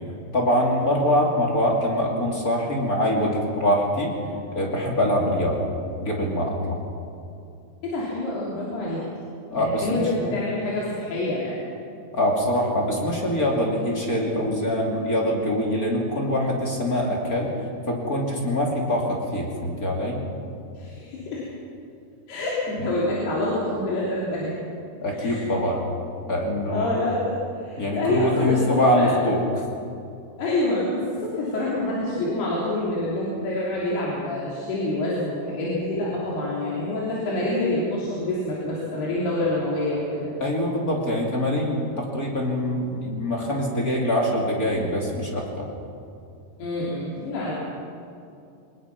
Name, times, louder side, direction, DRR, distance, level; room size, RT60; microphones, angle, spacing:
voice 1, 0.3-4.2 4.5-5.6 6.0-6.8 9.5-10.1 12.1-17.5 17.9-20.2 25.0-25.8 26.3-26.9 27.8-29.4 40.4-45.7, equal, 25° left, -1 dB, 2.4 m, -24 dB
voice 2, 7.8-9.0 9.5-11.6 20.7-21.4 22.3-24.5 25.1-25.5 26.7-27.3 27.6-29.2 30.4-40.3 46.6-47.6, left 1 dB, 75° left, -6 dB, 5.2 m, -27 dB
24.0 x 20.0 x 6.0 m, 2.5 s
omnidirectional pair, 4.7 m